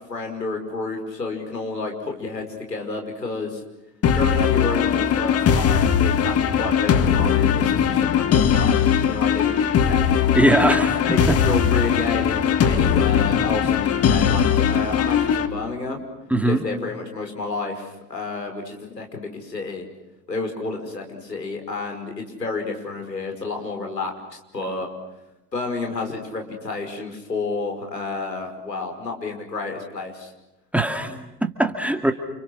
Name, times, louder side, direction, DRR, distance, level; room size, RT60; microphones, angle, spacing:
voice 1, 0.1-3.6 4.1-10.1 11.0-16.0 16.4-19.8 20.3-24.9 25.5-30.3, left 3 dB, 85° left, 3 dB, 5.5 m, -30 dB
sound 1, 4.0-15.5, left 8 dB, 30° left, 2.0 m, -20 dB
voice 2, 10.3-11.4 16.3-16.6 30.7-32.1, right 1 dB, 5° right, 5 dB, 2.4 m, -21 dB
30.0 x 29.5 x 6.4 m, 0.94 s
figure-of-eight pair, 80°, 48 cm